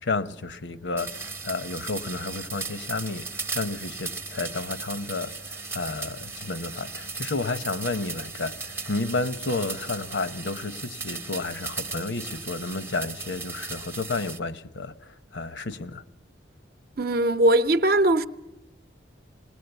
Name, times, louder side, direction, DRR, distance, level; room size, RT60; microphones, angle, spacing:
voice 1, 0.0-16.0, left 3 dB, 80° left, 0.9 m, -31 dB
sound 1, 1.0-14.4, right 4 dB, 15° right, 0.7 m, -37 dB
voice 2, 17.0-18.3, right 1 dB, 55° right, 0.7 m, -20 dB
20.5 x 19.5 x 8.0 m
head